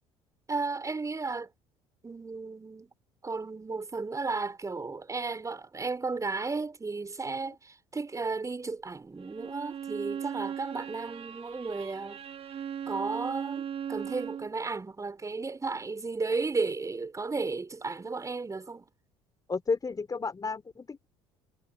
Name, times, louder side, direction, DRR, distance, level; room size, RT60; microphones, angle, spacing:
voice 1, 0.5-1.5 2.0-2.9 3.2-12.2 12.9-18.9, right 3 dB, 20° right, 6.1 m, -34 dB
Bowed string instrument, 9.2-14.5, right 8 dB, 45° right, 2.7 m, -38 dB
voice 2, 19.5-21.1, left 4 dB, 25° left, 4.0 m, -32 dB
hypercardioid pair, 70°, 14 cm